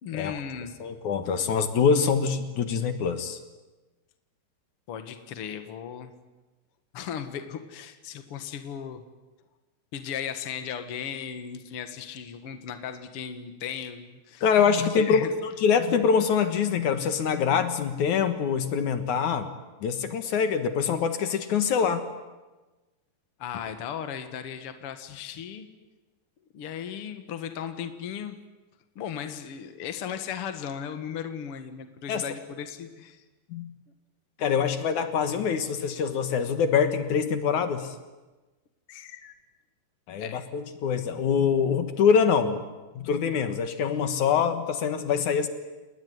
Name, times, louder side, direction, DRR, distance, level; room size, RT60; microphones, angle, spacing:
voice 1, 0.0-0.7 4.9-6.1 6.9-9.0 9.9-14.5 14.8-15.3 23.4-25.7 26.5-28.4 28.9-33.2 38.9-39.3 40.2-40.5, left 8 dB, 85° left, 8 dB, 1.2 m, -36 dB
voice 2, 0.8-3.4 14.4-19.5 19.8-22.0 32.1-32.2 33.5-33.7 34.4-37.9 40.1-42.6 42.9-45.5, left 6 dB, 60° left, 9 dB, 2.1 m, -24 dB
29.0 x 20.5 x 9.6 m, 1.2 s
omnidirectional pair, 5.4 m